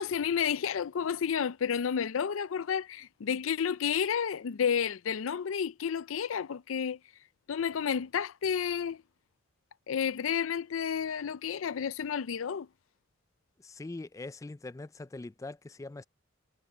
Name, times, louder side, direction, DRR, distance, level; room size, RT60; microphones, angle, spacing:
voice 1, 0.0-7.0 7.5-9.0 9.9-12.7, left 7 dB, 90° left, 0.5 m, -31 dB
voice 2, 13.6-16.0, left 2 dB, 15° left, 0.3 m, -42 dB
head